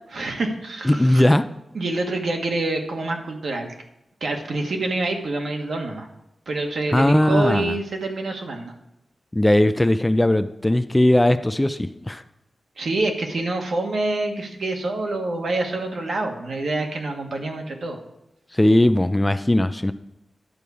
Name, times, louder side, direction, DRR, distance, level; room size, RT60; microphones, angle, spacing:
voice 1, 0.1-1.3 1.7-3.7 4.2-6.1 6.5-8.7 12.8-18.0, right 2 dB, 65° right, 2 dB, 1.4 m, -26 dB
voice 2, 0.8-1.5 6.9-7.8 9.3-12.2 18.5-19.9, left 1 dB, 10° left, 11 dB, 0.3 m, -18 dB
11.0 x 4.8 x 6.9 m, 0.88 s
wide cardioid pair, 165°, 0 cm